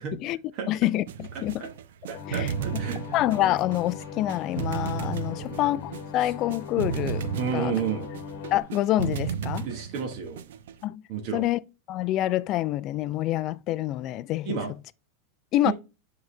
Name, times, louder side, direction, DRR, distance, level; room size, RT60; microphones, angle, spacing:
voice 1, 0.0-0.4 0.7-1.7 2.3-2.8 3.1-7.7 8.5-9.7 10.8-11.0 11.3-11.6 11.9-14.6 15.5-15.7, left 14 dB, 30° left, 0.3 m, -27 dB
sound 1, 1.1-10.8, right 8 dB, 80° right, 0.5 m, -34 dB
sound 2, 2.1-8.6, left 6 dB, 55° left, 1.1 m, -39 dB
voice 2, 2.1-3.0 5.3-5.6 7.4-8.1 9.6-10.4 11.1-11.4 14.4-14.7 15.6-15.7, right 7 dB, 40° right, 1.3 m, -31 dB
9.0 x 3.9 x 3.3 m
supercardioid pair, 165°, 0 cm